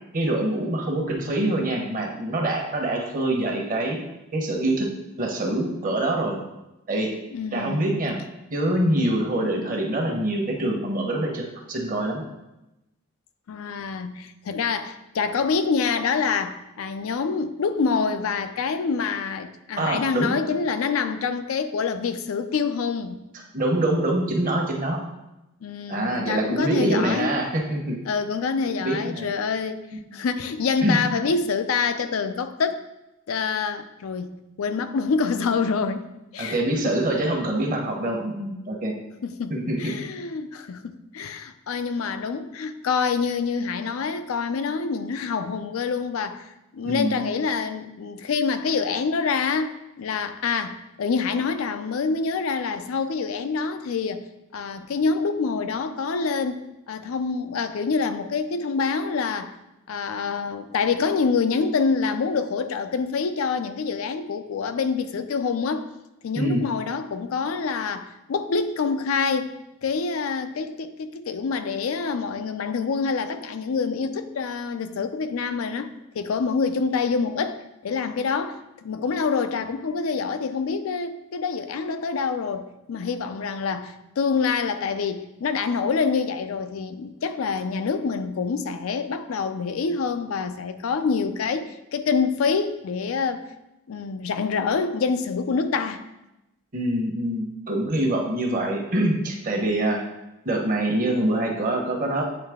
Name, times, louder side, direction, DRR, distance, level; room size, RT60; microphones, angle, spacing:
voice 1, 0.1-4.0 4.3-4.9 5.2-6.4 6.9-7.1 7.5-8.2 8.5-12.2 19.8-20.3 23.5-25.0 25.9-28.0 28.8-29.3 30.8-31.0 36.4-38.9 39.5-39.9 46.8-47.2 66.3-66.6 96.7-100.0 100.4-102.2, right 1 dB, 40° right, 1 dB, 1.0 m, -25 dB
voice 2, 7.3-8.0 13.5-23.2 25.6-27.4 28.1-29.8 30.1-32.8 33.3-36.0 36.3-36.6 39.2-54.2 54.5-59.5 59.9-65.9 66.2-69.5 69.8-75.9 76.1-93.4 93.9-96.0, left 5 dB, 85° left, 10 dB, 0.4 m, -26 dB
8.8 x 3.2 x 3.5 m, 0.93 s
head